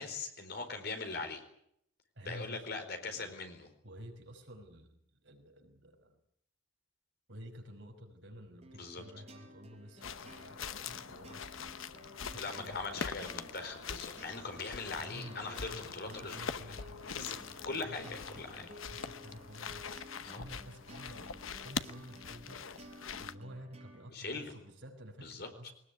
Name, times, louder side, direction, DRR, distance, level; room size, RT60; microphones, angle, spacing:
voice 1, 0.0-1.4 2.2-3.7 8.8-9.0 12.3-16.8 17.0-17.4 17.6-18.7 20.2-20.4 24.1-24.6 25.2-25.7, left 3 dB, 50° left, 6 dB, 4.5 m, -41 dB
voice 2, 2.2-2.7 3.0-3.3 3.8-6.2 7.3-11.4 12.2-13.1 15.0-17.1 17.7-22.8 23.2-25.7, equal, 65° right, 4 dB, 5.4 m, -51 dB
sound 1, 8.6-24.1, equal, 30° right, 4.8 m, -54 dB
sound 2, 10.0-23.3, left 6 dB, 85° left, 1.0 m, -43 dB
21.5 x 20.0 x 9.7 m, 0.72 s
head